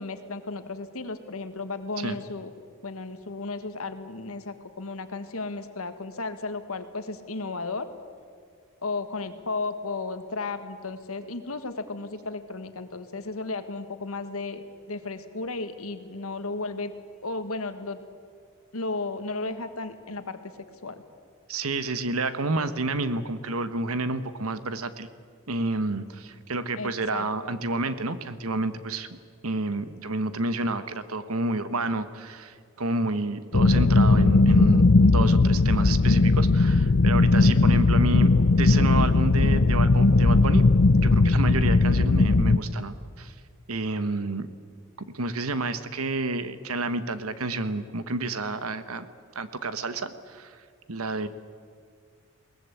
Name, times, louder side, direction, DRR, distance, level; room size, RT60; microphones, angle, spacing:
voice 1, 0.0-2.5 2.8-7.9 8.8-16.9 17.2-18.0 18.7-20.4 20.8-21.0 26.8-27.6, left 3 dB, 85° left, 9 dB, 1.6 m, -34 dB
voice 2, 21.5-25.1 25.5-29.2 29.4-40.6 41.0-43.3 43.7-44.5 45.0-49.0 49.3-50.6 50.9-51.3, right 2 dB, 90° right, 12 dB, 1.2 m, -30 dB
sound 1, 33.5-42.6, left 3 dB, 55° left, 0.6 m, -18 dB
21.5 x 19.0 x 8.4 m, 2.1 s
head